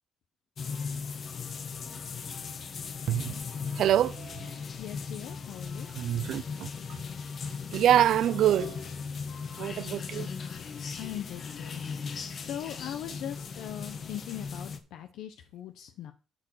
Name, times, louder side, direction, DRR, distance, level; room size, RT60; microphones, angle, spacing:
sound 1, 0.6-14.8, left 5 dB, 55° left, 1.3 m, -38 dB
voice 1, 3.1-3.4 3.8-4.5 5.9-6.7 7.7-8.8 9.6-10.3, right 11 dB, 75° right, 0.4 m, -25 dB
voice 2, 4.8-5.9 11.0-16.1, left 11 dB, 85° left, 0.8 m, -40 dB
10.5 x 4.8 x 6.3 m
cardioid pair, 90°, 0 cm